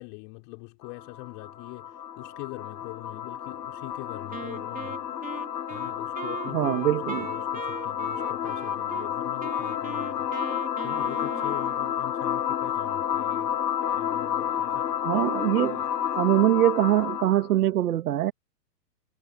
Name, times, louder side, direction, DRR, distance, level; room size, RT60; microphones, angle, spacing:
voice 1, 0.0-5.0 5.7-10.5 10.8-13.6 13.9-15.0 15.6-16.0, left 35 dB, 40° left, 6.0 m, -42 dB
sound 1, 0.8-17.5, left 10 dB, 80° left, 1.1 m, -30 dB
Wind instrument woodwind instrument, 4.3-9.1 9.4-12.0, right 7 dB, 15° right, 4.7 m, -40 dB
voice 2, 6.5-7.3 15.0-15.8 16.2-18.3, right 13 dB, 60° right, 2.2 m, -23 dB
hypercardioid pair, 120°, 49 cm